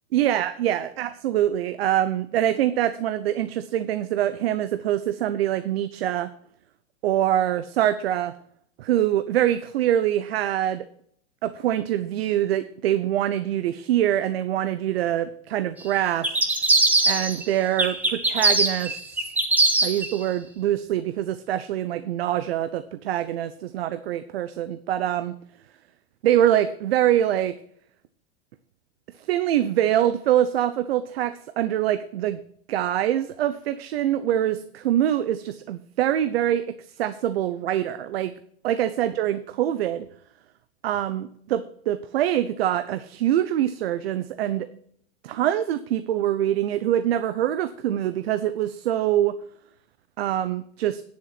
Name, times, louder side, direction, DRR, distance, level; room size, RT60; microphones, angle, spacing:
voice 1, 0.1-6.3 7.0-8.3 8.8-10.8 11.4-16.3 17.1-19.3 19.8-25.3 26.2-27.5 29.3-32.4 32.7-38.3 38.6-40.1 40.8-44.7 45.2-49.3 50.2-51.0, right 11 dB, 70° right, 12 dB, 0.8 m, -24 dB
sound 1, 16.2-17.4 17.8-20.1, right 2 dB, 5° right, 0.9 m, -21 dB
9.7 x 7.4 x 5.9 m, 0.64 s
supercardioid pair, 160°, 32 cm